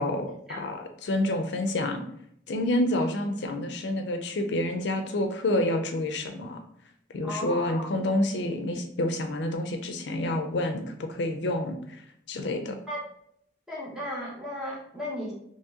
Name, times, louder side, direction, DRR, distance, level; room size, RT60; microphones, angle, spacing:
voice 1, 0.0-2.0 2.5-6.6 7.1-11.8 12.3-12.8, left 1 dB, 75° left, 5 dB, 0.4 m, -28 dB
voice 2, 7.2-7.9 12.9-13.0 13.7-15.3, left 1 dB, 5° right, -5 dB, 0.9 m, -35 dB
3.0 x 2.8 x 3.6 m, 0.71 s
head